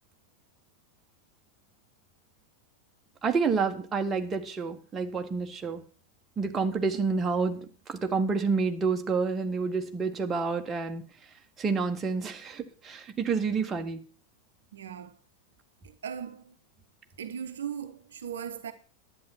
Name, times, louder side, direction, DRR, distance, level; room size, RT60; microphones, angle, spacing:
voice 1, 3.2-5.8 6.4-11.0 11.6-14.0, right 4 dB, 20° right, 1.7 m, -29 dB
voice 2, 14.7-15.2 15.8-16.5 17.2-18.7, right 8 dB, 65° right, 1.0 m, -38 dB
11.5 x 9.1 x 5.9 m
figure-of-eight pair, 90°, 0 cm